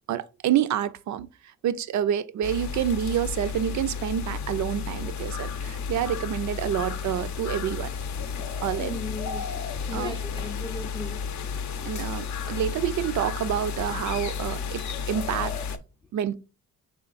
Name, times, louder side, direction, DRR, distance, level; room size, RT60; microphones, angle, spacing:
voice 1, 0.1-1.3 1.6-7.9 8.6-9.0 9.9-10.2 11.8-15.6 16.1-16.3, right 10 dB, 55° right, 0.5 m, -28 dB
sound 1, 2.4-15.8, left 6 dB, 55° left, 0.6 m, -32 dB
voice 2, 8.8-11.2 11.9-12.0, left 2 dB, 15° left, 0.4 m, -38 dB
5.6 x 3.8 x 2.4 m
cardioid pair, 115°, 34 cm